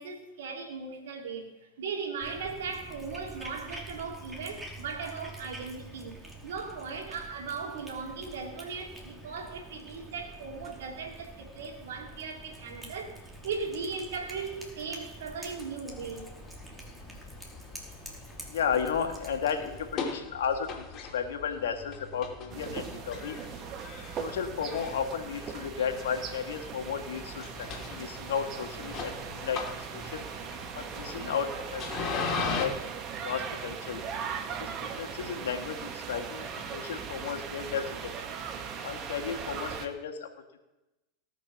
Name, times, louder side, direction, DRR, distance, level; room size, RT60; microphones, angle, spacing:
voice 1, 0.0-1.5 1.8-16.3, right 5 dB, 80° right, 2 dB, 2.7 m, -38 dB
Cat, 2.2-20.0, right 1 dB, 10° right, 3.1 m, -47 dB
sound 1, 15.8-32.7, left 5 dB, 40° left, 2.9 m, -40 dB
voice 2, 18.5-23.4 24.2-29.6 29.9-30.2 30.7-32.7 33.2-34.0 34.6-38.4 38.8-40.3 40.5-40.6, left 7 dB, 80° left, 5 dB, 1.8 m, -34 dB
sound 2, 22.5-39.9, right 7 dB, 40° right, 1.6 m, -39 dB
18.5 x 6.2 x 6.1 m, 1.0 s
hypercardioid pair, 105°, 0 cm